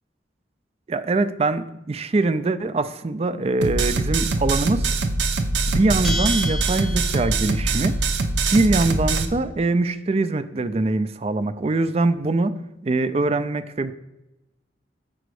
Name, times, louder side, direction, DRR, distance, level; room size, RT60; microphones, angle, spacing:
voice 1, 0.9-4.9 5.7-8.0 8.5-12.5 12.8-13.9, right 2 dB, 35° right, 12 dB, 0.4 m, -23 dB
sound 1, 3.6-9.2, right 3 dB, 85° right, 0.7 m, -23 dB
sound 2, 5.6-6.2, left 1 dB, 65° left, 0.5 m, -26 dB
Bell, 6.0-7.6, equal, ahead, 0.7 m, -31 dB
7.7 x 5.1 x 4.8 m, 0.94 s
head